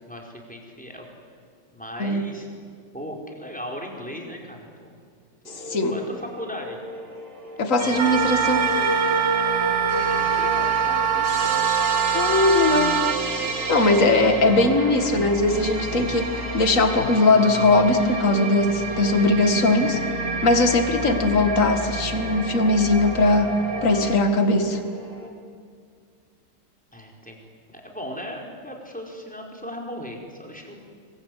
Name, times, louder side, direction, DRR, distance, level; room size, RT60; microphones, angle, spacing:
voice 1, 0.1-1.4 1.7-2.5 2.9-4.9 5.4-6.8 9.6-11.5 26.9-27.4 27.7-30.8, equal, 5° left, 0 dB, 4.8 m, -38 dB
sound 1, 5.4-25.3, left 1 dB, 50° right, 4.6 m, -43 dB
voice 2, 5.7-6.0 7.6-8.7 12.1-13.0 13.7-20.0 20.4-23.5 23.8-24.8, left 2 dB, 40° left, 6 dB, 2.4 m, -20 dB
sound 2, 7.8-24.2, right 2 dB, 30° right, 2.3 m, -29 dB
Wind instrument woodwind instrument, 7.9-13.2, right 9 dB, 80° right, 1.8 m, -24 dB
28.0 x 22.5 x 9.4 m, 2.1 s
omnidirectional pair, 2.3 m